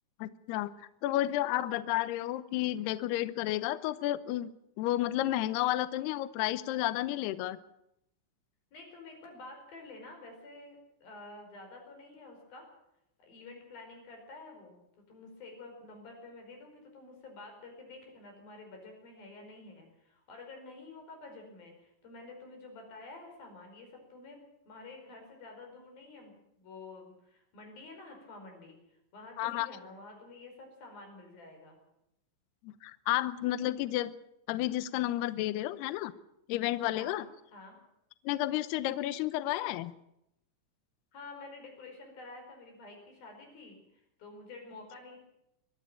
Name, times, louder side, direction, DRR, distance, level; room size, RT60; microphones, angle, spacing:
voice 1, 0.2-0.7 1.0-4.5 4.8-7.6 29.4-29.7 32.6-34.1 34.5-36.1 36.5-37.3 38.3-39.9, left 15 dB, 90° left, 15 dB, 2.3 m, -31 dB
voice 2, 8.7-12.7 13.2-14.8 15.1-28.8 29.1-31.8 36.8-37.8 41.1-45.2, left 3 dB, 45° left, 3 dB, 6.4 m, -49 dB
23.5 x 13.0 x 8.8 m, 0.82 s
omnidirectional pair, 5.9 m